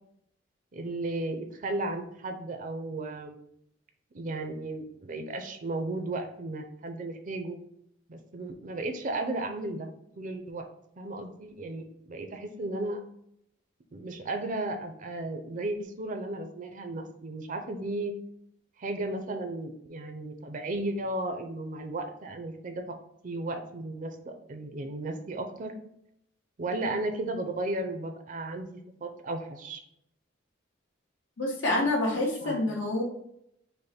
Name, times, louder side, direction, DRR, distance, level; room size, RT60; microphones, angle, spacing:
voice 1, 0.7-3.3 4.1-7.6 8.1-9.9 10.2-10.6 11.0-13.0 13.9-18.1 18.8-23.0 23.2-25.8 26.6-29.8 32.4-32.6, right 2 dB, 45° right, 6 dB, 0.5 m, -34 dB
voice 2, 31.4-33.0, left 2 dB, 85° left, -1 dB, 1.2 m, -27 dB
5.3 x 2.2 x 4.3 m, 0.75 s
head